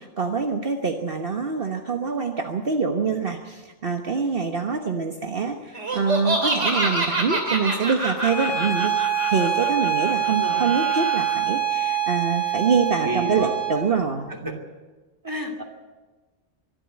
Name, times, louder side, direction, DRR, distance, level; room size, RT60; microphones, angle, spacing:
voice 1, 0.0-8.9 9.3-14.6, right 5 dB, 55° right, 4 dB, 1.4 m, -25 dB
Laughter, 5.7-11.3, right 2 dB, 90° right, 3.5 m, -27 dB
Bowed string instrument, 8.2-13.8, right 9 dB, 40° left, 4.2 m, -25 dB
voice 2, 10.3-10.7 13.0-13.5 14.4-14.5 15.2-15.6, right 1 dB, 15° right, 2 dB, 2.7 m, -30 dB
24.0 x 12.0 x 9.6 m, 1.3 s
omnidirectional pair, 1.2 m